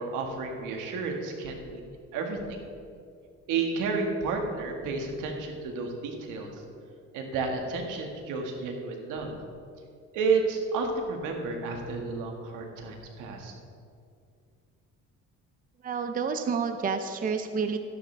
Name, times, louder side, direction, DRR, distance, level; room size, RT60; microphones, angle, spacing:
voice 1, 0.0-2.6 3.5-6.5 7.1-9.3 10.1-13.5, right 4 dB, 85° right, 2 dB, 1.9 m, -31 dB
voice 2, 15.8-17.8, right 5 dB, 30° right, 7 dB, 0.6 m, -29 dB
13.0 x 11.5 x 3.4 m, 2.3 s
cardioid pair, 120°, 31 cm